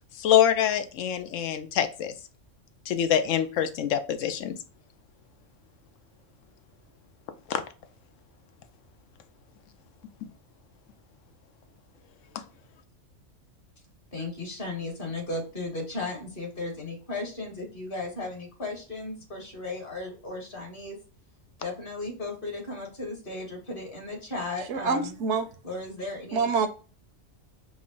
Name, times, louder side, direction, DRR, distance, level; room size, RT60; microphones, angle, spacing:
voice 1, 0.2-2.1 2.9-4.5 7.5-7.6, left 9 dB, 85° left, 9 dB, 1.0 m, -25 dB
voice 2, 14.1-21.0 21.6-25.1 25.6-26.5, left 2 dB, 45° left, 0 dB, 1.6 m, -35 dB
voice 3, 24.7-25.5 26.3-26.7, right 5 dB, 75° right, 10 dB, 0.9 m, -26 dB
5.2 x 2.1 x 3.8 m, 0.36 s
omnidirectional pair, 1.3 m